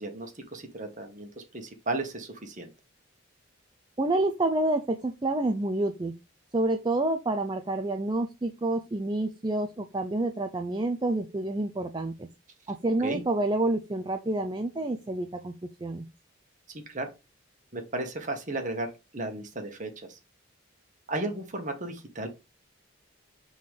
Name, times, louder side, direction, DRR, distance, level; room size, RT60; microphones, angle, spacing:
voice 1, 0.0-2.7 13.0-13.2 16.7-17.1 17.7-20.2 21.1-22.3, right 2 dB, 35° right, 4 dB, 1.4 m, -34 dB
voice 2, 4.0-6.2 6.5-12.3 12.7-16.1, right 2 dB, 20° right, 6 dB, 0.5 m, -28 dB
5.6 x 3.9 x 4.9 m, 0.26 s
head